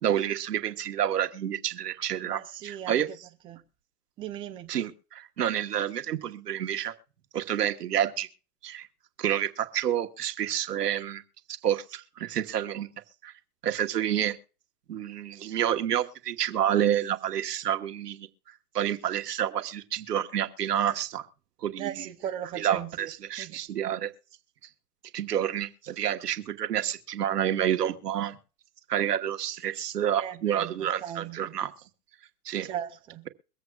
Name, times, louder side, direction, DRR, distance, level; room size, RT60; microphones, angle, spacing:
voice 1, 0.0-3.1 4.7-6.9 7.3-8.3 8.6-8.9 9.2-11.2 11.6-12.9 13.2-13.3 13.6-14.4 14.9-18.3 18.7-21.3 21.6-22.1 22.6-24.1 25.1-28.4 28.9-31.7 32.4-32.7, right 10 dB, 90° right, 1.4 m, -29 dB
voice 2, 2.2-3.0 3.4-3.6 4.2-4.7 21.8-23.1 23.4-23.6 30.2-31.5 32.6-33.3, right 10 dB, 10° right, 0.4 m, -38 dB
23.5 x 7.9 x 2.3 m
hypercardioid pair, 135°, 46 cm